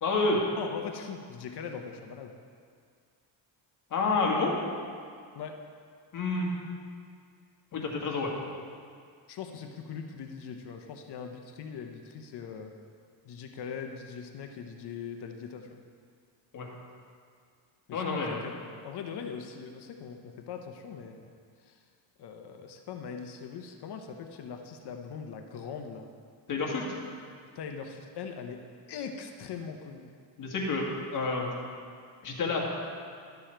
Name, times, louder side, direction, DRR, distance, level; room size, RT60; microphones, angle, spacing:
voice 1, 0.0-0.4 3.9-4.6 6.1-6.5 7.7-8.3 16.5-16.7 17.9-18.4 26.5-26.8 30.4-31.5 32.2-32.6, left 3 dB, 40° left, -1 dB, 1.8 m, -29 dB
voice 2, 0.6-2.3 5.3-5.6 9.3-12.7 13.2-15.8 17.9-18.5 18.8-21.3 21.6-21.8 22.2-26.1 27.5-30.1, left 6 dB, 55° left, 5 dB, 0.8 m, -41 dB
11.5 x 7.0 x 4.4 m, 2.1 s
cardioid pair, 135°, 46 cm